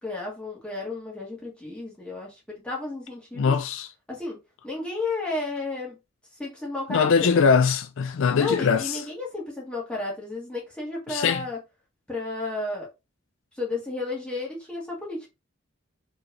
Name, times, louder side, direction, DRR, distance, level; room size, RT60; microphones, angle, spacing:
voice 1, 0.0-3.5 4.1-4.4 4.6-6.0 6.4-7.5 8.4-11.6 12.1-12.9 13.6-15.3, left 3 dB, 5° left, 2.1 m, -32 dB
voice 2, 3.4-3.9 6.9-9.0 11.1-11.4, left 5 dB, 70° left, 0.4 m, -21 dB
4.7 x 3.9 x 2.8 m
head